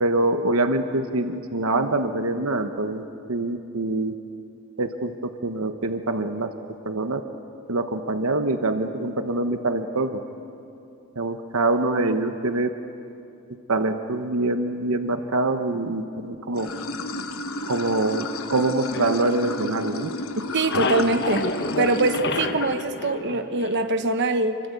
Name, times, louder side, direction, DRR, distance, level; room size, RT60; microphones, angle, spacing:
voice 1, 0.0-3.0 3.3-4.2 4.8-6.5 6.8-7.2 7.7-10.2 11.2-12.7 13.7-16.7 17.6-20.1, right 2 dB, 70° right, 7 dB, 1.1 m, -25 dB
Water / Sink (filling or washing), 16.5-22.2, left 1 dB, 70° left, 1.4 m, -32 dB
sound 1, 18.9-20.1 20.4-24.1, left 3 dB, 50° left, 1.3 m, -30 dB
voice 2, 20.5-21.5 21.8-24.6, right 2 dB, 50° right, 8 dB, 1.3 m, -23 dB
27.0 x 23.5 x 8.3 m, 2.7 s
head